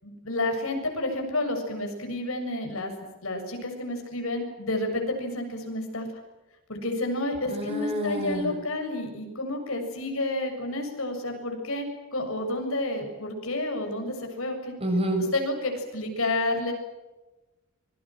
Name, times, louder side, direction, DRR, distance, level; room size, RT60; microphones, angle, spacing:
voice 1, 0.0-2.9 3.2-6.1 6.7-14.7 15.3-16.7, left 2 dB, 65° left, 4 dB, 7.2 m, -30 dB
voice 2, 7.5-8.5 14.8-15.3, right 1 dB, 25° right, 4 dB, 7.3 m, -28 dB
26.0 x 24.5 x 7.7 m, 1.1 s
head